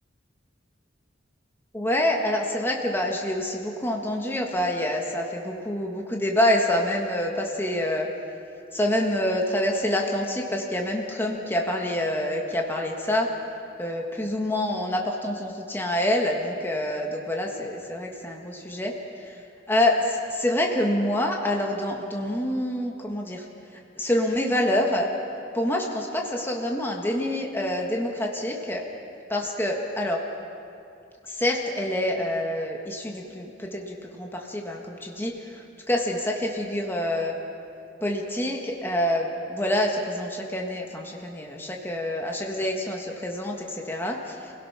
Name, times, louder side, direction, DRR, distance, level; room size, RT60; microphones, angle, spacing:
voice 1, 1.7-8.1 8.7-13.3 13.8-19.3 19.7-23.5 24.0-25.1 25.5-28.8 29.3-30.2 31.3-37.4 38.0-44.5, left 1 dB, 10° left, 0 dB, 1.7 m, -27 dB
27.5 x 17.0 x 5.8 m, 2.6 s
head